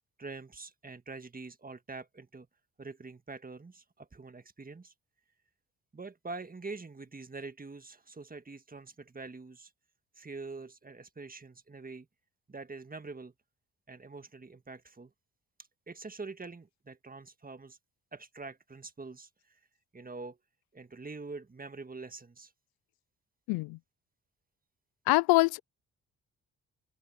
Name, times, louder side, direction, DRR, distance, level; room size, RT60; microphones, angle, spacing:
voice 1, 0.2-2.5 2.8-4.9 5.9-9.7 10.2-12.1 12.5-13.3 13.9-15.1 15.9-17.8 18.1-19.6 19.9-20.4 20.7-22.5, right 3 dB, 25° right, 1.7 m, -45 dB
voice 2, 23.5-23.8 25.1-25.6, left 25 dB, 85° left, 0.5 m, -24 dB
supercardioid pair, 50°, 36 cm